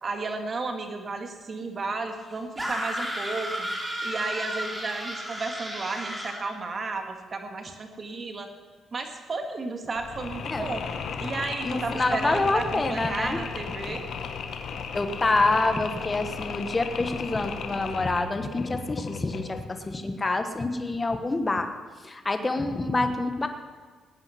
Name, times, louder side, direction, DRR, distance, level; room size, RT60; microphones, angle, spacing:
voice 1, 0.0-3.7 4.0-8.5 8.9-10.8 11.2-14.1, right 3 dB, 40° right, 5 dB, 2.0 m, -33 dB
sound 1, 2.6-6.4, equal, 15° right, 2.7 m, -33 dB
Mechanisms, 10.0-19.7, left 6 dB, 65° left, 1.3 m, -36 dB
voice 2, 11.6-13.4 13.9-14.0 14.9-21.7 22.0-23.5, left 2 dB, 25° left, 7 dB, 1.3 m, -27 dB
19.0 x 9.1 x 5.9 m, 1.5 s
cardioid pair, 90°, 0 cm